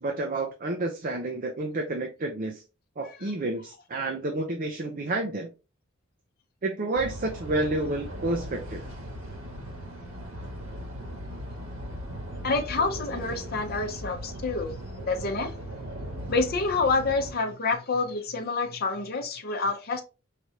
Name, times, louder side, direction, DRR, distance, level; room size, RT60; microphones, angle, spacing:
voice 1, 0.0-2.6 3.0-5.5 6.6-8.8, right 2 dB, 40° right, 0.6 m, -30 dB
sound 1, 7.0-17.3, equal, 70° right, 1.8 m, -38 dB
voice 2, 12.4-14.7 15.1-15.5 16.3-20.0, left 3 dB, 45° left, 0.7 m, -27 dB
4.6 x 3.3 x 2.7 m
head